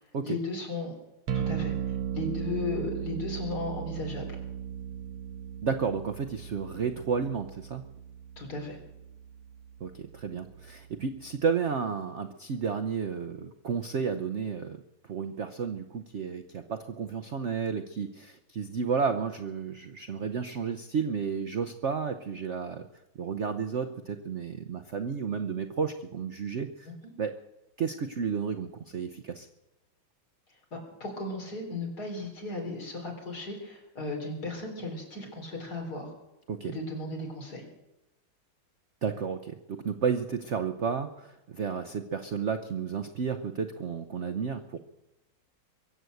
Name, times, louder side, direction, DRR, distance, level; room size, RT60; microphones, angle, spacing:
voice 1, 0.2-0.9 1.3-4.4 8.4-8.8 30.7-36.1 36.7-37.7, left 3 dB, 50° left, 1 dB, 4.1 m, -36 dB
sound 1, 1.3-11.3, right 9 dB, 90° right, 1.8 m, -37 dB
voice 2, 5.6-7.8 9.8-22.9 23.2-26.9 27.2-27.3 27.8-29.5 36.5-36.7 39.0-44.8, right 6 dB, 60° right, 8 dB, 0.7 m, -32 dB
23.0 x 8.1 x 7.8 m, 0.95 s
omnidirectional pair, 2.2 m